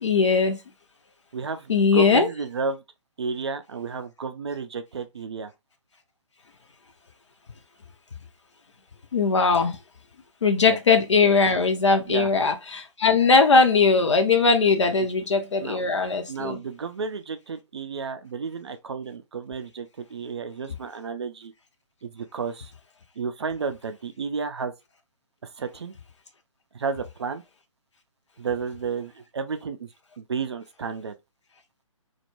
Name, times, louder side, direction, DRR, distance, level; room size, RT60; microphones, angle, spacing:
voice 1, 0.0-0.6 1.7-2.3 9.1-9.8 10.4-16.6, left 4 dB, 60° left, 0.5 m, -20 dB
voice 2, 1.3-2.8 3.2-5.5 10.6-10.8 12.1-12.3 15.0-15.1 15.6-15.8 16.3-21.5 22.0-22.7 23.2-24.7 25.6-25.9 26.7-27.4 28.4-29.9 30.2-31.1, right 5 dB, 55° right, 0.4 m, -32 dB
2.2 x 2.0 x 2.9 m
figure-of-eight pair, 135°, 17 cm